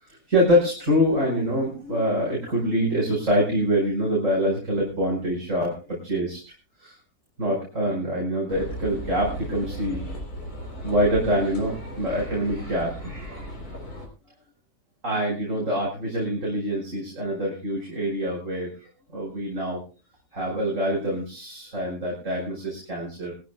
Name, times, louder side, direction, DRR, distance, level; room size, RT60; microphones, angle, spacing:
voice 1, 0.0-6.4 6.8-7.0 7.4-10.1 10.8-13.5 15.0-19.8 20.3-23.3, equal, 55° right, -2 dB, 5.3 m, -25 dB
sound 1, 8.5-14.1, equal, 85° left, 4.3 m, -36 dB
21.0 x 15.0 x 2.2 m, 0.34 s
omnidirectional pair, 1.6 m